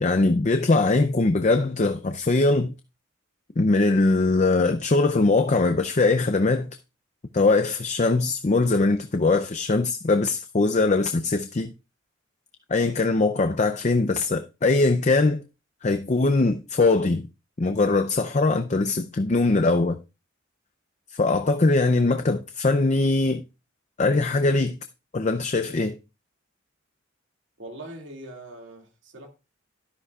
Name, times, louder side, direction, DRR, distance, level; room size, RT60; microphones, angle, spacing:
voice 1, 0.0-2.7 3.6-6.8 7.3-11.7 12.7-15.4 15.8-17.2 17.6-20.0 21.1-23.4 24.0-24.8 25.1-26.0, left 3 dB, 35° left, 0.5 m, -21 dB
voice 2, 27.6-29.3, right 1 dB, 65° right, 2.3 m, -41 dB
12.5 x 11.5 x 2.4 m
head